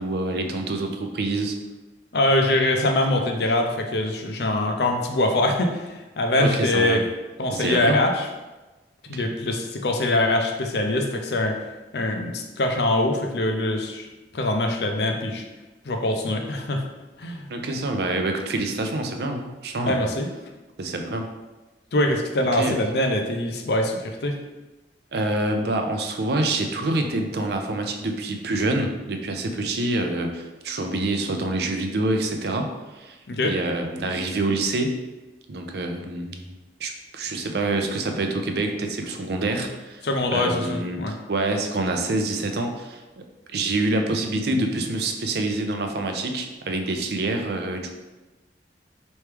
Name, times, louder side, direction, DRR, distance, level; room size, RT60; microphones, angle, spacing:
voice 1, 0.0-1.6 6.4-7.0 7.5-8.0 9.1-9.3 17.5-20.1 20.8-21.3 22.5-22.8 25.1-35.0 35.5-36.5 36.8-43.0 43.5-47.9, right 2 dB, 60° right, 4 dB, 0.5 m, -26 dB
voice 2, 2.1-7.0 7.4-8.3 9.1-11.6 11.9-14.1 14.3-15.4 15.9-16.8 17.2-17.5 19.8-20.3 21.9-24.4 33.3-33.6 40.0-41.2, left 1 dB, 65° left, 3 dB, 0.6 m, -23 dB
4.5 x 3.1 x 3.4 m, 1.1 s
head